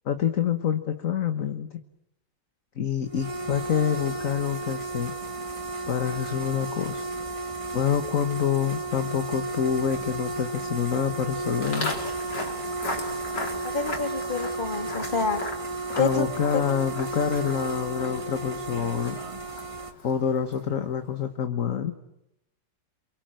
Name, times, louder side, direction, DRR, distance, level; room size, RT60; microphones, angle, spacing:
voice 1, 0.0-1.8 2.8-5.1 5.9-7.0 7.7-11.9 15.9-19.2 20.0-21.9, left 8 dB, 50° left, 8 dB, 1.6 m, -27 dB
sound 1, 3.1-19.9, right 2 dB, 15° right, 2.1 m, -33 dB
Walk footsteps, 11.6-20.8, left 2 dB, 70° left, 4.6 m, -38 dB
voice 2, 13.6-15.4 16.0-16.2 16.5-16.6, left 4 dB, 25° left, 7 dB, 2.6 m, -27 dB
27.5 x 24.0 x 7.7 m, 0.85 s
omnidirectional pair, 1.9 m